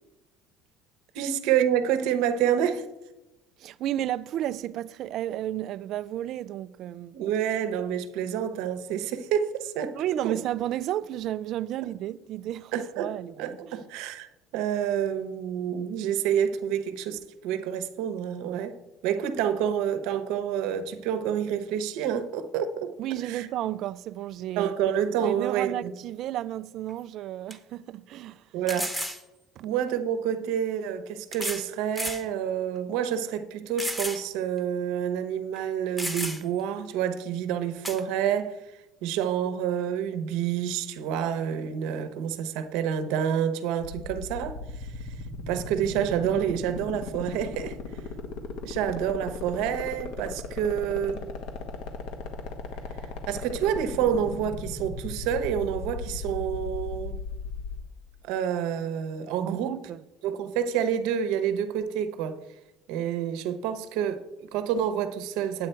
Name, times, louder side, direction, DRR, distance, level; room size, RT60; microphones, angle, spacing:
voice 1, 1.1-2.9 7.1-10.0 10.2-10.4 12.7-13.1 13.4-14.3 14.5-18.8 19.0-23.0 23.2-23.5 24.6-25.9 28.5-28.9 29.6-38.6 39.0-44.6 45.5-47.8 48.6-51.3 53.3-57.2 58.2-59.8 60.2-62.4 62.9-65.7, right 9 dB, 75° right, 0.9 m, -28 dB
voice 2, 3.6-7.2 9.9-13.8 23.0-24.7 25.2-28.4 29.6-29.7 59.4-60.0, right 12 dB, 55° right, 0.3 m, -32 dB
sound 1, 26.9-27.0 27.5-27.6 28.7-29.2 30.3-30.4 31.3-31.7 32.0-32.2 32.8-32.9 33.8-34.2 34.6-34.7 35.6-35.7 36.0-36.6 37.8-38.0, equal, 5° left, 1.0 m, -32 dB
Black Hawk City Fly-Over, 43.8-57.8, left 4 dB, 75° left, 1.3 m, -36 dB
8.8 x 8.5 x 4.5 m
cardioid pair, 125°, 0 cm